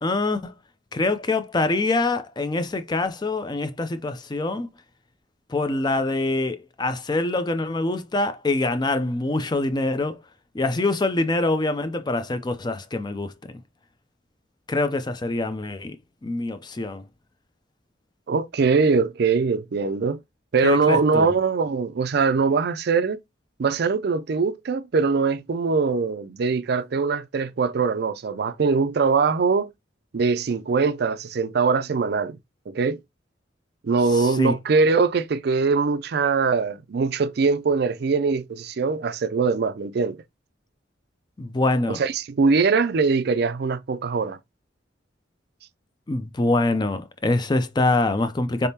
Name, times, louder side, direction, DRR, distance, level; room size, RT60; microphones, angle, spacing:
voice 1, 0.0-0.5 0.9-4.7 5.5-10.2 10.5-13.3 14.7-16.0 16.2-17.0 20.6-21.3 34.1-34.5 41.4-42.0 46.1-48.7, left 2 dB, 25° left, 0.4 m, -24 dB
voice 2, 18.3-20.2 20.5-23.2 23.6-29.7 30.1-32.4 32.7-33.0 33.8-40.2 41.9-44.4, right 4 dB, 60° right, 0.4 m, -22 dB
4.0 x 3.6 x 2.7 m
head